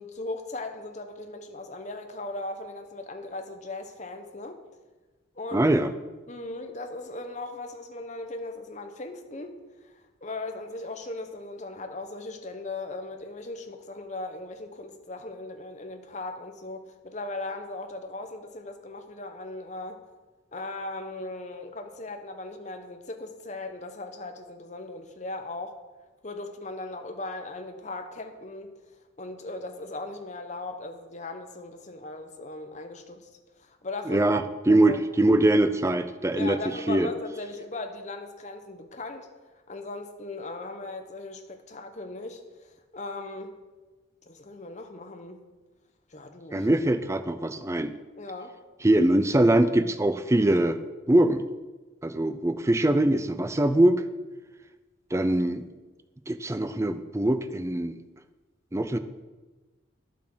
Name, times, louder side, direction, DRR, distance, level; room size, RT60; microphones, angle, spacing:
voice 1, 0.0-4.6 5.3-5.7 6.3-9.6 9.8-20.0 20.5-25.8 26.2-28.8 29.2-33.3 33.6-35.0 36.3-39.3 39.7-43.6 44.2-45.4 46.1-46.7 48.2-48.5, left 2 dB, 35° left, 6 dB, 1.0 m, -38 dB
voice 2, 5.5-5.9 34.1-36.6 36.9-37.1 46.5-47.9 48.8-50.8 51.1-51.5 52.0-54.0 55.1-55.6 56.3-58.0 58.7-59.0, right 1 dB, 15° right, 10 dB, 0.5 m, -22 dB
10.0 x 7.1 x 6.2 m, 1.2 s
head